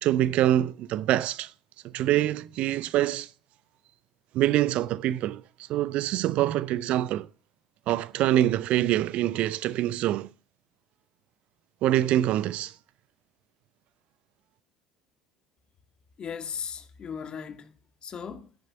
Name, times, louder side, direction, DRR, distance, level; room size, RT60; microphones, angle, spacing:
voice 1, 0.0-1.5 1.9-3.3 4.3-5.4 5.7-7.3 7.9-10.3 11.8-12.7, right 13 dB, 50° right, 0.6 m, -25 dB
voice 2, 16.2-17.7 18.0-18.5, left 7 dB, 35° left, 2.1 m, -37 dB
14.0 x 11.0 x 5.6 m
figure-of-eight pair, 60°, 3 cm